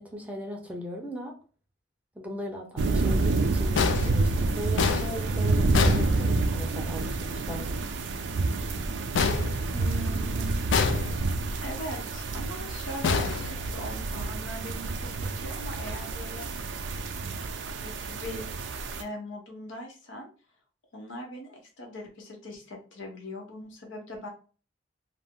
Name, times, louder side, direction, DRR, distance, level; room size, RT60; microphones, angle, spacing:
voice 1, 0.0-1.3 2.2-7.8, equal, 10° right, 1 dB, 0.5 m, -38 dB
sound 1, 2.8-19.0, right 3 dB, 70° right, 0.4 m, -29 dB
sound 2, 3.8-6.8 9.1-10.2 10.7-11.5 13.0-14.1, left 5 dB, 70° left, 0.3 m, -28 dB
voice 2, 9.7-10.5 11.6-16.5 17.4-17.5 17.8-18.7 19.0-20.3 20.9-24.3, equal, 85° left, 1 dB, 0.8 m, -40 dB
2.5 x 2.0 x 3.5 m, 0.38 s
head